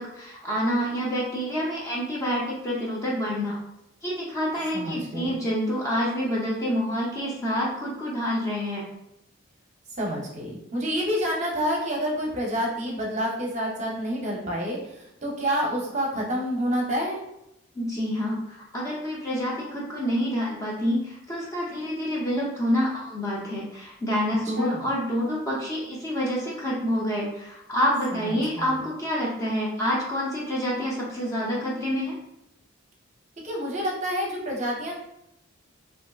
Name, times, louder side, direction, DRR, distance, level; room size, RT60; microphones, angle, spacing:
voice 1, 0.0-3.6 4.0-8.8 17.8-32.2, equal, 15° left, -5 dB, 0.6 m, -27 dB
voice 2, 4.7-5.4 10.0-17.2 24.4-24.8 28.1-28.9 33.4-34.9, equal, 35° right, -2 dB, 0.7 m, -28 dB
3.4 x 2.6 x 2.4 m, 0.84 s
head